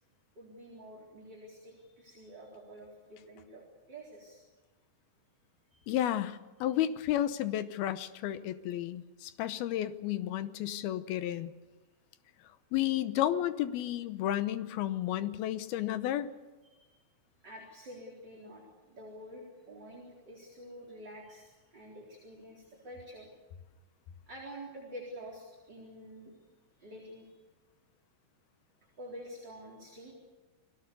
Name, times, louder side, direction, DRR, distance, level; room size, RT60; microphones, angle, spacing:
voice 1, 0.4-4.4 5.7-5.9 16.7-16.9 17.4-23.3 24.3-26.4 26.8-27.3 29.0-30.2, equal, 25° right, -2 dB, 4.3 m, -48 dB
voice 2, 5.9-11.5 12.7-16.3, left 12 dB, 75° left, 12 dB, 2.6 m, -32 dB
29.5 x 20.5 x 6.9 m, 1.2 s
omnidirectional pair, 4.9 m